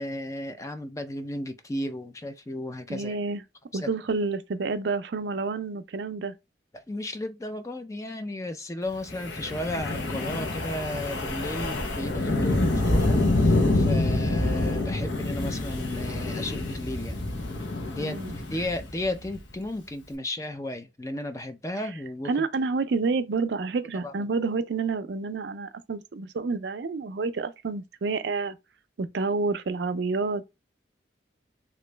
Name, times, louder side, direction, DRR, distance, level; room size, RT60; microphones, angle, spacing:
voice 1, 0.0-3.2 3.8-3.9 6.7-17.2 17.9-22.5 24.0-24.1, left 1 dB, 15° left, 0.3 m, -34 dB
voice 2, 2.9-3.4 3.7-6.3 18.0-18.3 22.2-28.6 29.0-30.4, right 4 dB, 70° right, 0.4 m, -29 dB
Wind, 9.1-19.4, left 2 dB, 85° left, 0.9 m, -26 dB
3.0 x 2.5 x 3.2 m
head